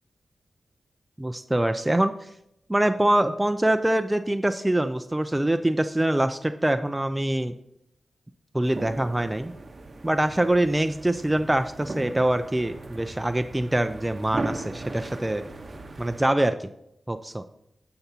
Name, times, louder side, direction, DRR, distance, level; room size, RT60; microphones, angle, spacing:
voice 1, 1.2-2.1 2.7-7.5 8.5-9.5 10.0-15.4 16.0-16.7 17.1-17.4, right 1 dB, 15° right, 8 dB, 0.4 m, -24 dB
sound 1, 8.6-16.2, right 2 dB, 45° right, 0.9 m, -38 dB
9.5 x 6.8 x 2.8 m, 0.78 s
cardioid pair, 65°, 0 cm